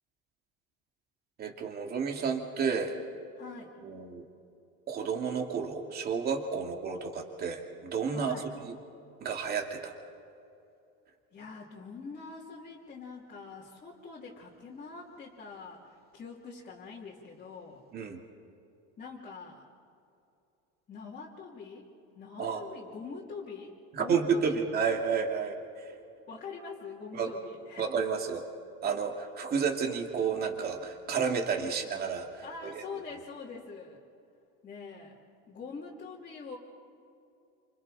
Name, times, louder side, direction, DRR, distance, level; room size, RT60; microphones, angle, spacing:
voice 1, 1.4-2.9 3.8-4.2 4.9-8.4 8.6-8.7 9.2-10.0 17.9-18.2 22.4-22.6 23.9-25.9 27.1-27.3 27.8-28.4 28.8-32.8, right 6 dB, 30° right, 2 dB, 2.6 m, -31 dB
voice 2, 3.4-3.7 8.1-8.5 11.3-17.8 19.0-19.6 20.9-21.9 22.1-24.6 26.3-27.8 28.9-29.0 31.6-31.7 32.4-34.0 34.6-35.2 35.5-36.6, left 4 dB, 25° left, -6 dB, 2.9 m, -44 dB
29.0 x 27.5 x 4.3 m, 2.7 s
cardioid pair, 155°, 29 cm